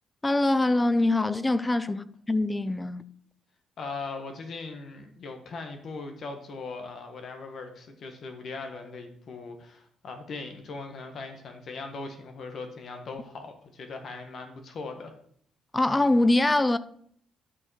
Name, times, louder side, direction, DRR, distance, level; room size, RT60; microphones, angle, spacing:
voice 1, 0.2-3.0 15.7-16.8, left 2 dB, 15° left, 0.5 m, -23 dB
voice 2, 3.8-15.1, left 3 dB, 55° left, 1.5 m, -39 dB
12.0 x 5.0 x 4.9 m
cardioid pair, 90°, 0 cm